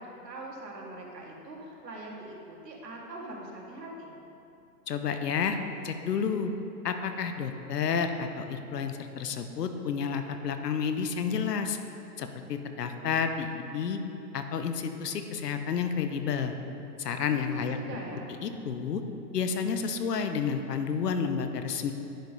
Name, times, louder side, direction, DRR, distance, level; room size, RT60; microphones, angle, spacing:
voice 1, 0.0-4.1 17.5-18.3, right 2 dB, 80° right, -2 dB, 2.1 m, -42 dB
voice 2, 4.9-5.6 5.8-6.5 6.8-11.8 12.2-14.0 14.3-16.5 17.0-17.8 18.4-19.0 19.3-21.9, left 6 dB, 70° left, 7 dB, 1.0 m, -30 dB
10.5 x 5.3 x 5.2 m, 2.8 s
hypercardioid pair, 145°, 49 cm